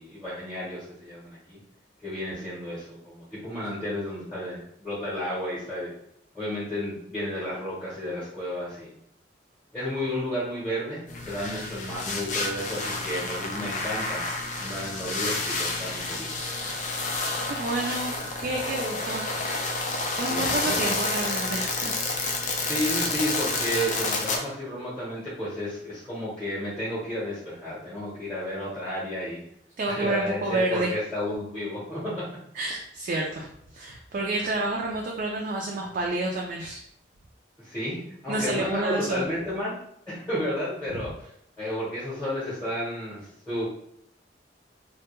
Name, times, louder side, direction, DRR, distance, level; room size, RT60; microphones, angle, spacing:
voice 1, 0.0-1.6 2.0-5.9 6.3-9.0 9.7-14.3 14.6-16.3 20.3-20.9 22.6-29.4 29.9-32.4 37.6-39.7 40.1-41.3 41.6-43.7, equal, 5° left, -9 dB, 0.8 m, -32 dB
sound 1, 11.1-24.4, left 3 dB, 40° left, 0.4 m, -29 dB
voice 2, 17.5-19.2 20.2-22.0 29.8-30.9 32.5-36.8 38.3-39.2 41.0-41.1, right 2 dB, 50° right, -2 dB, 0.3 m, -29 dB
2.2 x 2.1 x 2.9 m, 0.71 s
head